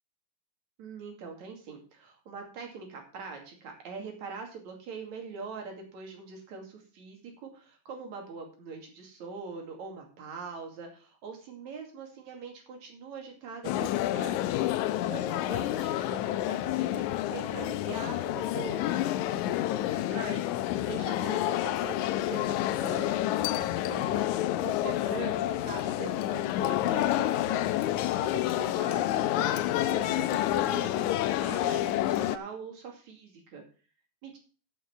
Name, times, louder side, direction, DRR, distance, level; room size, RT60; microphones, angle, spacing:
voice 1, 0.8-14.5 15.1-27.6 28.2-33.6 34.2-34.4, right 5 dB, 55° right, 2 dB, 3.7 m, -43 dB
sound 1, 13.6-32.4, left 13 dB, 85° left, 1.7 m, -29 dB
12.0 x 6.4 x 6.0 m, 0.38 s
omnidirectional pair, 4.1 m